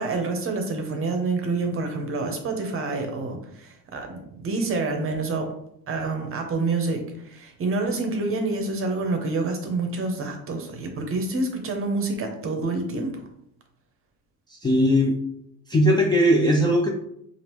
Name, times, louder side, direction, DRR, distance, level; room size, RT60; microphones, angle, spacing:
voice 1, 0.0-5.5 5.9-13.2, right 3 dB, 35° right, 4 dB, 0.8 m, -27 dB
voice 2, 14.5-15.1 15.7-16.9, equal, 15° left, -1 dB, 0.3 m, -19 dB
5.0 x 2.5 x 3.0 m, 0.73 s
cardioid pair, 140°, 36 cm